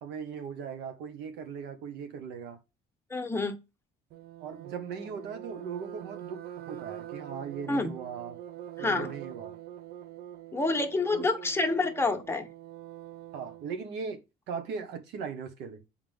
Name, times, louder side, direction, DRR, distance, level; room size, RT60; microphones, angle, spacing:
voice 1, 0.0-2.6 4.4-6.4 6.7-8.4 8.8-9.6 11.1-11.3 13.3-14.2 14.5-15.8, right 6 dB, 90° right, 1.5 m, -38 dB
voice 2, 3.1-3.5 7.7-7.9 8.8-9.1 10.5-12.5, left 3 dB, 15° left, 1.3 m, -28 dB
sound 1, 4.1-13.7, right 12 dB, 70° right, 0.7 m, -44 dB
7.5 x 4.7 x 3.7 m
cardioid pair, 110°, 17 cm